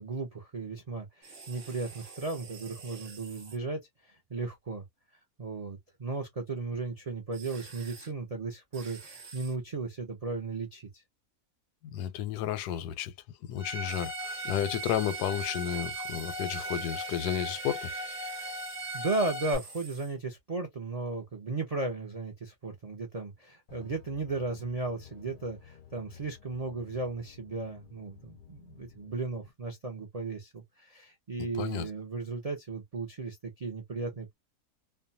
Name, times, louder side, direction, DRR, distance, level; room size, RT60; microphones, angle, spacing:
voice 1, 0.0-3.8 4.1-4.8 5.4-10.9 18.9-34.3, right 3 dB, 65° right, 0.3 m, -35 dB
sound 1, 1.2-3.6 7.3-8.1 8.7-9.6 13.9-20.2, right 4 dB, 45° right, 1.0 m, -48 dB
voice 2, 11.9-13.1 13.4-17.9 31.6-31.9, left 10 dB, 90° left, 1.2 m, -32 dB
Bowed string instrument, 13.6-19.6, right 1 dB, 15° right, 0.7 m, -38 dB
sound 2, 23.7-29.5, left 9 dB, 65° left, 0.5 m, -53 dB
2.7 x 2.2 x 2.6 m
omnidirectional pair, 1.7 m